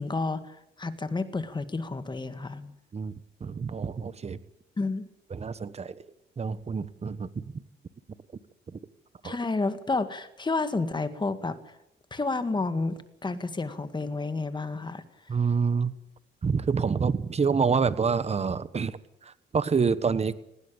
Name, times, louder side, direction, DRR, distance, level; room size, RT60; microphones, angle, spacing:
voice 1, 0.0-2.7 4.8-5.1 9.2-11.6 12.1-15.0, left 3 dB, 25° left, 10 dB, 2.0 m, -30 dB
voice 2, 3.4-4.4 5.3-6.0 6.4-7.5 8.7-8.8 9.2-9.4 15.3-15.9 16.4-20.3, right 5 dB, 30° right, 15 dB, 1.2 m, -27 dB
19.0 x 17.0 x 8.8 m, 0.83 s
cardioid pair, 90°, 20 cm